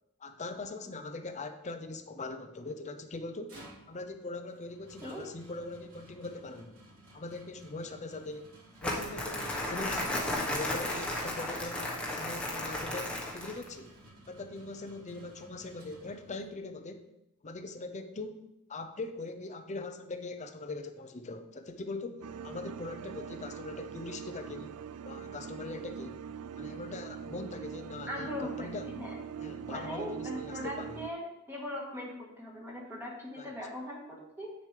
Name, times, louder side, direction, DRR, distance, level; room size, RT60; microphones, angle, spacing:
voice 1, 0.2-3.6 3.9-6.8 7.1-8.5 8.8-13.9 14.3-17.1 17.4-24.8 25.1-26.2 26.6-28.9 29.4-31.0 33.4-33.5, left 3 dB, 35° left, 7 dB, 0.6 m, -41 dB
sound 1, 3.2-16.6, right 1 dB, 70° right, 3.1 m, -56 dB
Crumpling crinkling, 8.8-13.7, left 1 dB, 5° left, 1.2 m, -34 dB
sound 2, 22.2-31.1, right 7 dB, 90° right, 0.4 m, -42 dB
voice 2, 28.1-28.7 29.0-29.2 29.7-31.2 31.5-34.5, left 1 dB, 10° right, -3 dB, 1.6 m, -40 dB
8.7 x 6.5 x 3.4 m, 0.86 s
head